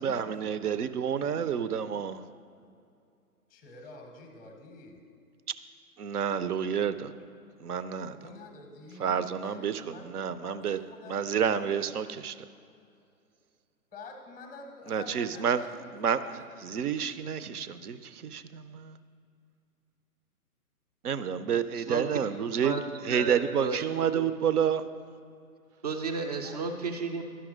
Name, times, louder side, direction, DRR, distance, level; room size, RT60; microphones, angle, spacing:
voice 1, 0.0-2.2 6.0-7.1 7.6-8.2 9.0-10.8 11.1-12.3 14.9-15.6 16.0-16.2 16.6-19.0 21.0-22.7 23.0-24.8, right 8 dB, 80° right, 13 dB, 0.6 m, -29 dB
voice 2, 3.5-5.0 8.2-11.7 13.9-16.4 26.4-26.7, left 3 dB, 10° left, 4 dB, 0.6 m, -48 dB
voice 3, 21.7-22.1 22.6-22.8 23.1-24.3 25.8-27.2, right 4 dB, 30° right, 3 dB, 0.3 m, -33 dB
11.0 x 5.9 x 4.9 m, 2.4 s
figure-of-eight pair, 135°, 45 cm